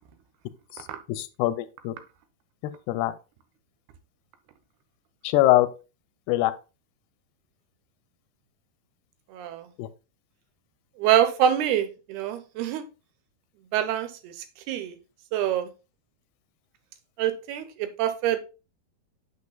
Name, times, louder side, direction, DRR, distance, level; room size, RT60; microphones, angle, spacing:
voice 1, 1.1-2.0 2.9-3.1 5.2-5.7 6.3-6.5 9.8-9.9, left 16 dB, 90° left, 2.6 m, -22 dB
voice 2, 9.3-9.7 11.0-12.8 13.7-14.3 14.7-14.9 15.3-15.7 17.2-18.4, right 10 dB, 85° right, 2.8 m, -25 dB
9.6 x 6.6 x 2.2 m
omnidirectional pair, 4.5 m